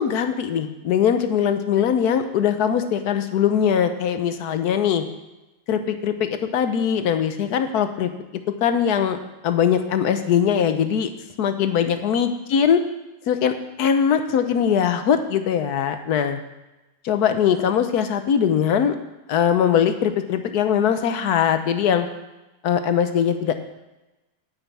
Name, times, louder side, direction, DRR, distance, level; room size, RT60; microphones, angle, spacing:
voice 1, 0.0-5.0 5.7-8.1 8.6-9.2 9.4-11.1 11.4-12.8 13.3-16.4 17.0-19.0 19.3-22.1 22.6-23.5, left 8 dB, 70° left, 8 dB, 1.3 m, -21 dB
9.4 x 5.7 x 8.2 m, 1.0 s
omnidirectional pair, 1.8 m